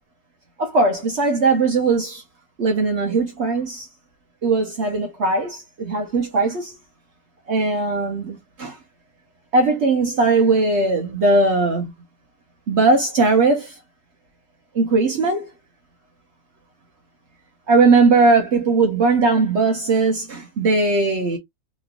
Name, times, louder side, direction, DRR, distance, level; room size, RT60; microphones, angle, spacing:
voice 1, 0.6-2.2 2.6-3.9 4.4-6.7 7.5-8.8 9.5-11.9 12.7-13.8 14.7-15.5 17.7-21.4, right 3 dB, 55° right, 1.0 m, -19 dB
3.1 x 3.0 x 2.3 m
omnidirectional pair, 1.5 m